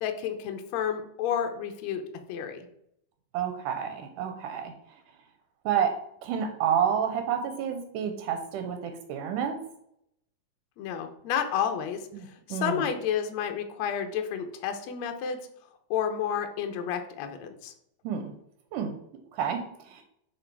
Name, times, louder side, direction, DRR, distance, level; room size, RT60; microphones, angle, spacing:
voice 1, 0.0-2.0 2.3-2.7 10.8-15.4 15.9-17.7, left 8 dB, 70° left, 6 dB, 1.8 m, -31 dB
voice 2, 3.3-4.7 5.7-5.9 6.2-9.6 12.1-12.3 12.5-12.9 18.0-18.3 18.7-18.9 19.3-20.0, right 8 dB, 85° right, 7 dB, 2.2 m, -29 dB
6.2 x 4.8 x 4.5 m, 0.73 s
omnidirectional pair, 3.7 m